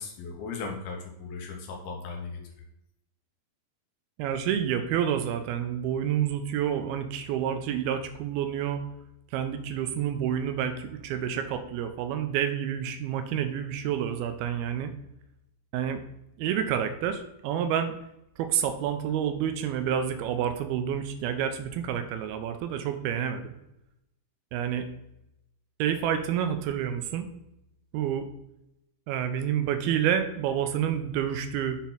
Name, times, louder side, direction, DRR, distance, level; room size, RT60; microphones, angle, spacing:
voice 1, 0.0-2.4, left 4 dB, 75° left, 2 dB, 2.8 m, -37 dB
voice 2, 4.2-8.8 9.3-14.9 15.7-16.0 16.4-17.9 18.4-23.5 24.5-24.9 25.8-27.3 27.9-28.3 29.1-31.8, right 9 dB, 90° right, 8 dB, 2.5 m, -29 dB
7.0 x 4.2 x 3.9 m, 0.84 s
omnidirectional pair, 4.4 m